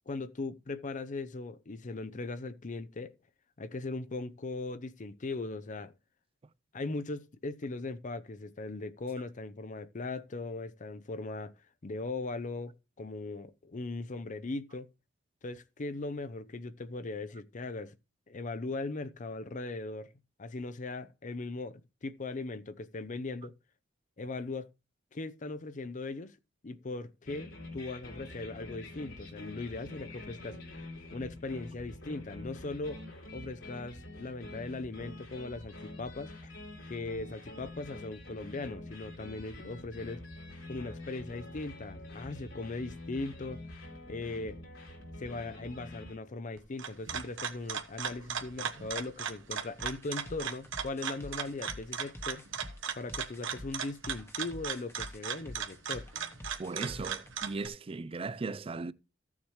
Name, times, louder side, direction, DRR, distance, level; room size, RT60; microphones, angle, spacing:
voice 1, 0.1-3.1 3.6-5.9 6.7-11.5 11.8-14.9 15.4-18.0 18.3-20.1 20.4-23.5 24.2-24.7 25.1-26.4 26.6-33.0 33.3-36.5 36.9-40.2 40.7-43.6 44.1-44.6 45.2-52.4 53.0-56.1, left 3 dB, 40° left, 0.6 m, -39 dB
sound 1, 27.3-46.2, left 1 dB, 80° left, 3.5 m, -46 dB
sound 2, 46.6-57.7, right 7 dB, 70° right, 1.1 m, -38 dB
sound 3, 49.8-57.3, left 1 dB, 15° left, 1.1 m, -48 dB
voice 2, 56.6-58.9, right 3 dB, 30° right, 0.4 m, -37 dB
14.5 x 7.2 x 3.2 m
head